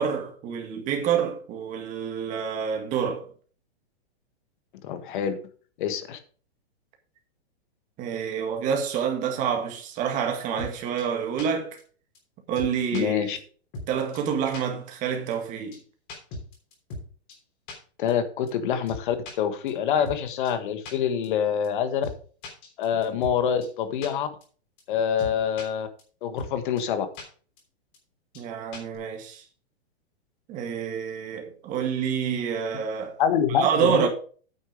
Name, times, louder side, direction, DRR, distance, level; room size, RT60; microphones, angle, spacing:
voice 1, 0.0-3.3 8.0-11.8 12.5-13.3 13.9-15.8 28.4-29.4 30.5-33.2 33.6-34.1, right 7 dB, 25° right, 1.8 m, -27 dB
voice 2, 4.8-5.4 5.8-6.2 12.9-13.4 18.0-22.1 22.8-24.3 24.9-25.9 26.2-27.1 33.2-34.1, left 8 dB, 50° left, 1.5 m, -26 dB
sound 1, 10.6-10.7 11.0-11.1 11.4-11.5 11.8-11.9 12.1-12.2 12.6-13.0 13.4-13.5 13.7-13.9 14.1-14.2 14.5-14.6 14.9-15.0 15.3-15.4 15.7-15.8 16.1-17.0 17.3-17.4 17.7-17.8 18.1-18.2 18.5-18.6 18.9-19.3 19.7-19.8 20.0-20.2 20.4-20.5 20.9-21.0 21.2-21.3 21.6-21.7 22.0-22.2 22.4-23.3 23.6-23.7 24.0-24.1 24.4-24.5 24.8-24.9 25.2-25.7 26.0-26.1 26.4-26.5 26.8-26.9 27.1-27.2 27.6-27.7 27.9-28.0 28.3-28.4 28.7-29.0, left 2 dB, 30° left, 3.2 m, -38 dB
9.2 x 6.5 x 5.2 m
hypercardioid pair, 160°, 33 cm